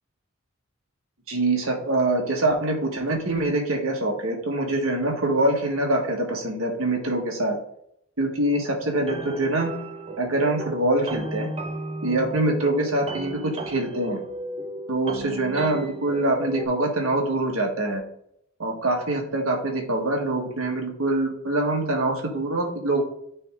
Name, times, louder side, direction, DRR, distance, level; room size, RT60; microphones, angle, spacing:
voice 1, 1.3-7.6 8.2-9.7 10.2-11.5 12.0-14.2 14.9-18.0 18.6-23.0, right 2 dB, 75° right, 0 dB, 1.6 m, -24 dB
sound 1, 9.0-16.7, right 2 dB, 30° right, 0.8 m, -35 dB
9.2 x 3.5 x 3.6 m, 0.71 s
head